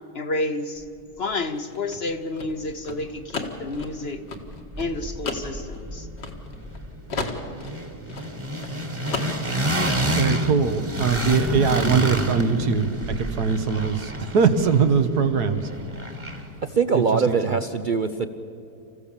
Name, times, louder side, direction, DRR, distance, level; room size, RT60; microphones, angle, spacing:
voice 1, 0.1-0.8 1.2-4.2 4.8-6.1, left 2 dB, 50° left, 9 dB, 0.9 m, -30 dB
sound 1, 1.5-6.8 7.1-8.8 9.0-9.7, left 4 dB, 85° left, 2.5 m, -34 dB
sound 2, 2.7-2.8 3.0-4.2 4.4-16.6, equal, 20° right, 1.6 m, -30 dB
voice 2, 10.2-12.9 13.2-15.6 16.9-17.4, right 5 dB, 70° right, 10 dB, 1.8 m, -21 dB
voice 3, 16.6-18.3, right 5 dB, 55° right, 9 dB, 0.5 m, -22 dB
28.0 x 15.0 x 7.2 m, 2.7 s
omnidirectional pair, 1.8 m